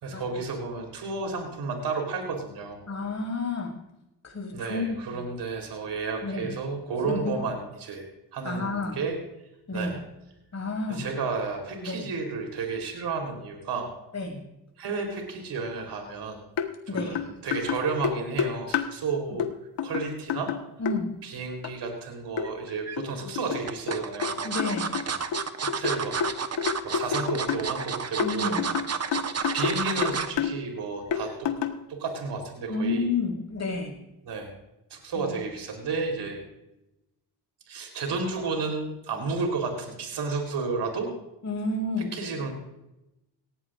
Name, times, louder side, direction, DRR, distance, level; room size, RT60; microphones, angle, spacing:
voice 1, 0.0-2.8 4.5-9.2 9.7-10.0 10.9-13.9 14.8-16.4 16.9-19.4 19.8-20.5 21.2-24.4 25.1-25.2 25.6-28.8 29.5-31.5 31.9-33.1 34.2-34.5 34.9-36.4 37.7-41.1 42.0-42.5, right 4 dB, 65° right, 3 dB, 3.8 m, -32 dB
voice 2, 2.9-3.7 4.2-5.0 6.2-6.5 7.0-7.4 8.4-9.0 9.7-10.0 10.5-11.1 11.8-12.1 14.1-14.4 16.9-17.2 20.8-21.1 24.4-24.9 28.2-28.6 32.7-33.9 35.2-35.3 41.4-42.1, left 3 dB, 35° left, 1 dB, 6.2 m, -30 dB
sound 1, 16.6-16.7 17.0-19.0 19.4-19.5 19.8-21.0 21.6-21.7 22.4-22.5 23.0-24.3 24.6-27.7 28.2-29.8 30.0-30.5 31.1-31.8, left 8 dB, 70° left, 1.5 m, -29 dB
sound 2, 22.4-23.0 23.7-30.4 30.8-31.0 31.3-31.4, right 6 dB, 35° right, 1.2 m, -31 dB
18.5 x 16.0 x 2.6 m, 0.91 s
cardioid pair, 85°, 44 cm